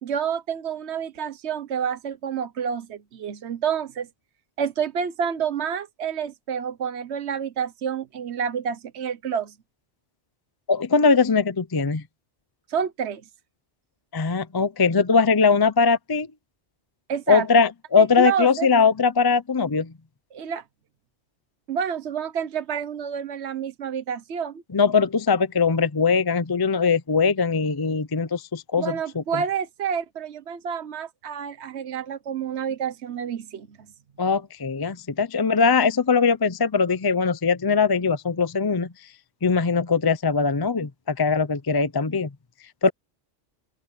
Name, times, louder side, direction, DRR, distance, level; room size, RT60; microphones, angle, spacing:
voice 1, 0.0-4.1 4.6-9.5 12.7-13.2 17.1-17.5 18.0-18.7 20.3-20.6 21.7-24.6 28.8-33.7, right 7 dB, 70° right, 1.2 m, -28 dB
voice 2, 10.7-12.0 14.1-16.3 17.3-19.9 24.7-29.2 34.2-38.9 39.4-42.3 42.8-42.9, left 5 dB, 25° left, 0.5 m, -21 dB
open air
omnidirectional pair, 1.2 m